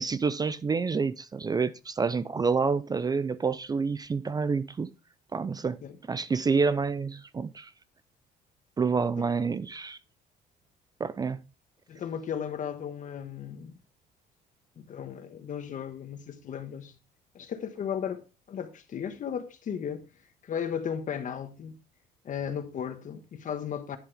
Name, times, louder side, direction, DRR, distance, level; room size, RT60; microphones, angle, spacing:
voice 1, 0.0-4.9 5.3-5.8 6.1-7.7 8.8-10.0 11.0-11.4, right 5 dB, 25° right, 0.5 m, -28 dB
voice 2, 11.9-13.7 14.8-17.0 17.3-18.2 18.5-20.1 20.4-21.8 22.2-24.0, left 8 dB, 50° left, 1.4 m, -35 dB
10.5 x 7.5 x 3.4 m
cardioid pair, 110°, 17 cm